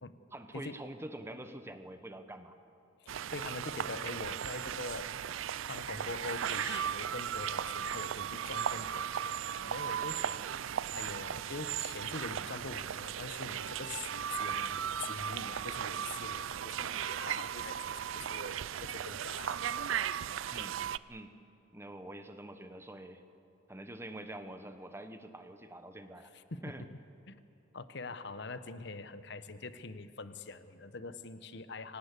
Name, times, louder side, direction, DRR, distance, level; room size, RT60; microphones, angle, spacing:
voice 1, 0.3-2.6 20.5-20.8 21.1-21.3 21.7-23.2 23.7-26.3 26.6-26.9, right 1 dB, 15° right, 8 dB, 1.1 m, -46 dB
voice 2, 3.0-5.1 5.7-17.8 18.1-19.9 26.3-26.6 27.3-27.4 27.7-32.0, left 3 dB, 60° left, 12 dB, 1.0 m, -44 dB
sound 1, 3.1-21.0, right 9 dB, 90° right, 0.4 m, -36 dB
25.5 x 18.5 x 8.3 m, 2.7 s
head